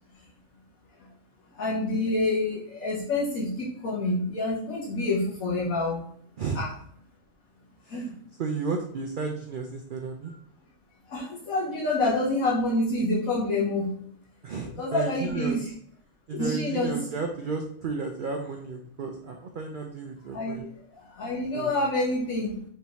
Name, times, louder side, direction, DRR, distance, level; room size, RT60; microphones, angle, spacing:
voice 1, 1.5-6.0 6.5-6.7 7.9-8.1 11.1-13.9 14.8-15.7 16.3-17.0 20.3-20.7 21.0-22.7, left 2 dB, 85° left, -6 dB, 1.4 m, -27 dB
voice 2, 8.4-10.3 14.4-15.6 16.3-20.6 21.5-21.8, right 4 dB, 75° right, 3 dB, 0.4 m, -33 dB
4.3 x 3.5 x 2.9 m, 0.64 s
omnidirectional pair, 1.4 m